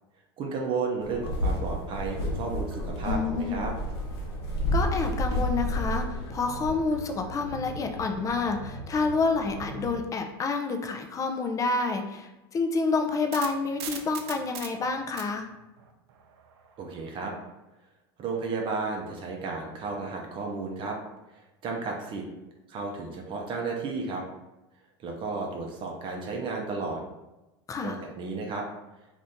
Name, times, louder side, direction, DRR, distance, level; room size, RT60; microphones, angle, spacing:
voice 1, 0.4-3.7 16.8-17.3 18.2-21.0 21.6-22.2 22.7-24.2 25.0-27.0 27.8-28.6, right 4 dB, 40° right, 1 dB, 0.6 m, -33 dB
sound 1, 1.0-10.0, left 1 dB, 80° left, 0.9 m, -32 dB
voice 2, 3.0-3.6 4.7-15.5 27.7-28.0, left 4 dB, 25° left, 5 dB, 0.4 m, -28 dB
sound 2, 12.9-17.2, right 8 dB, 80° right, 0.5 m, -41 dB
2.7 x 2.6 x 3.5 m, 1.0 s
supercardioid pair, 115°, 14 cm